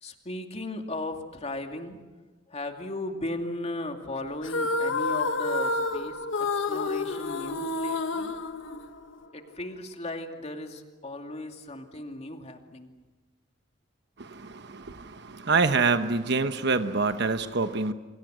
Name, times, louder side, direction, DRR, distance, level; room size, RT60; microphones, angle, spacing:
voice 1, 0.0-2.1 2.5-8.3 9.3-12.9, left 2 dB, 35° left, 4 dB, 2.5 m, -36 dB
sound 1, 4.4-9.3, left 3 dB, 90° left, 1.4 m, -29 dB
voice 2, 14.2-17.9, right 4 dB, 60° right, 9 dB, 1.1 m, -26 dB
28.5 x 25.5 x 6.3 m, 1.2 s
head